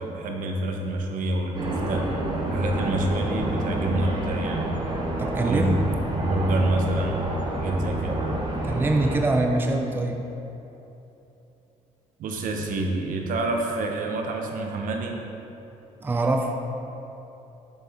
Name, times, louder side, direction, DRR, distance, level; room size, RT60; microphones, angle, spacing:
voice 1, 0.0-2.1 2.4-4.7 5.4-7.2 7.5-8.2 12.2-15.2, right 1 dB, 70° right, 2 dB, 0.9 m, -27 dB
sound 1, 1.5-9.2, right 1 dB, 30° right, 1.2 m, -28 dB
voice 2, 5.2-5.9 8.6-10.2 16.0-16.5, right 2 dB, 15° right, 3 dB, 0.5 m, -24 dB
7.6 x 6.6 x 3.6 m, 3.0 s
cardioid pair, 120°, 14 cm